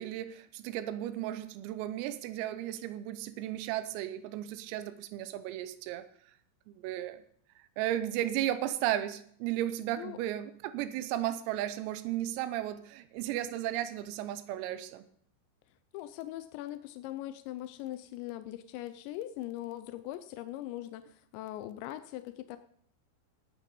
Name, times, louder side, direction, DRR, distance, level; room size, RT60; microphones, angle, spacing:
voice 1, 0.0-6.1 6.7-7.2 7.8-15.0, right 13 dB, 85° right, 12 dB, 3.5 m, -34 dB
voice 2, 15.9-22.6, left 14 dB, 90° left, 11 dB, 2.5 m, -41 dB
15.0 x 9.1 x 5.4 m, 0.63 s
omnidirectional pair, 5.9 m